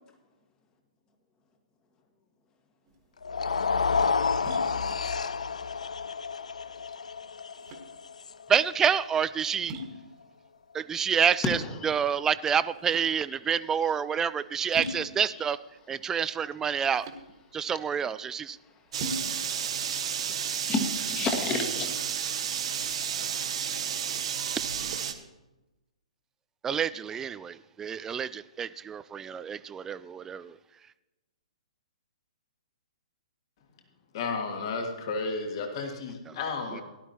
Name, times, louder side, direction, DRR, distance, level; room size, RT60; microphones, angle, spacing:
sound 1, 2.9-21.4, equal, 40° right, 1.6 m, -44 dB
sound 2, 3.2-9.5, left 5 dB, 70° left, 0.4 m, -30 dB
voice 1, 8.5-9.8 10.7-11.6 11.8-15.6 15.9-17.1 17.5-18.6 26.6-30.5 36.7-36.8, right 7 dB, 10° right, 16 dB, 0.3 m, -28 dB
voice 2, 11.4-12.2 13.8-13.9 14.7-14.9 15.3-15.5 17.6-17.7 18.6-18.9 19.5-19.8 20.4-22.9, left 3 dB, 20° left, 4 dB, 1.6 m, -34 dB
sound 3, 18.9-25.1, right 8 dB, 55° right, 1.0 m, -31 dB
voice 3, 34.1-36.8, left 4 dB, 45° left, 3 dB, 2.0 m, -32 dB
17.5 x 11.5 x 2.9 m, 1.0 s
figure-of-eight pair, 120°, 4 cm